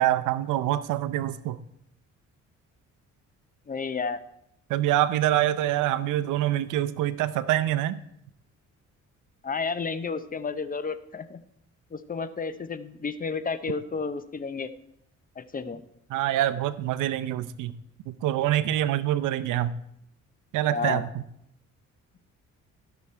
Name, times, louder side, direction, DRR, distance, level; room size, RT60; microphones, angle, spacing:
voice 1, 0.0-1.6 4.7-8.0 16.1-17.8 18.1-19.7 20.5-21.2, right 13 dB, 85° right, 14 dB, 0.6 m, -25 dB
voice 2, 3.7-4.2 9.4-11.4 11.9-14.7 15.4-15.8 20.7-21.0, left 5 dB, 30° left, 12 dB, 0.7 m, -31 dB
15.0 x 6.1 x 4.4 m, 0.75 s
cardioid pair, 90°, 30 cm